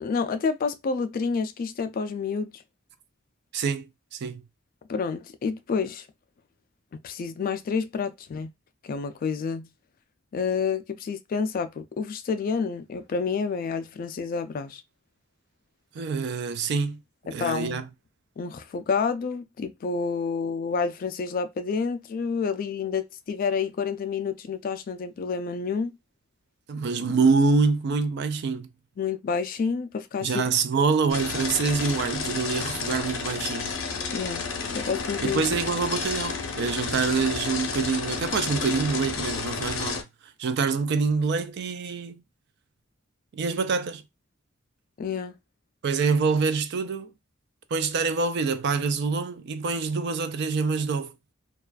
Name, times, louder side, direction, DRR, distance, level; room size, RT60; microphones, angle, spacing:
voice 1, 0.0-2.6 4.9-6.1 7.0-8.5 8.8-9.7 10.3-14.8 17.3-17.8 18.4-26.0 29.0-30.4 34.1-34.5 34.7-35.4 45.0-45.3, left 5 dB, 45° left, 0.3 m, -29 dB
voice 2, 3.5-4.4 15.9-17.0 17.3-17.8 26.7-28.7 30.2-33.7 35.2-40.0 40.4-42.2 43.3-44.0 45.8-47.1 47.7-51.1, right 4 dB, 55° right, 0.3 m, -26 dB
sound 1, 31.1-40.0, left 5 dB, 85° left, 0.6 m, -31 dB
2.4 x 2.3 x 2.3 m
head